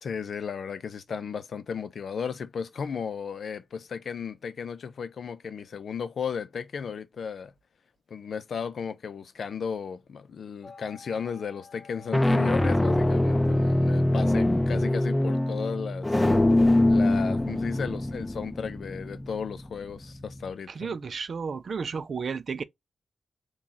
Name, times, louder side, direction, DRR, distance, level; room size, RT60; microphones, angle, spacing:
voice 1, 0.0-7.5 8.1-16.2 16.9-20.9, left 6 dB, 70° left, 0.5 m, -35 dB
sound 1, 10.7-11.1 11.9-20.5, left 1 dB, 20° left, 0.6 m, -24 dB
voice 2, 20.8-22.6, right 5 dB, 65° right, 0.3 m, -32 dB
2.9 x 2.3 x 3.9 m
supercardioid pair, 40°, 0 cm